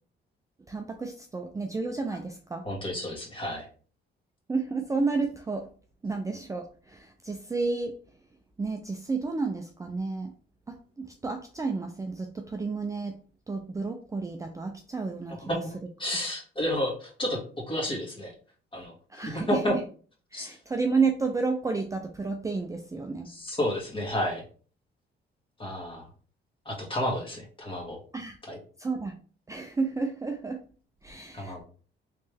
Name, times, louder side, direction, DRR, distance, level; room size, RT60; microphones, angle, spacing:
voice 1, 0.7-2.7 4.5-5.7 6.0-7.9 8.6-10.3 10.7-13.2 13.5-15.4 19.1-19.8 20.3-23.3 28.1-28.4 28.8-29.1 29.5-30.6 31.0-31.6, right 4 dB, 15° right, 4 dB, 0.4 m, -31 dB
voice 2, 2.6-3.7 15.3-15.7 16.0-17.4 17.7-18.3 18.7-19.7 20.3-20.6 23.2-24.4 25.6-26.1 26.6-28.0 28.5-28.6 31.3-31.6, left 1 dB, 25° left, 0 dB, 1.6 m, -31 dB
3.2 x 3.2 x 3.3 m, 0.41 s
cardioid pair, 90°, 20 cm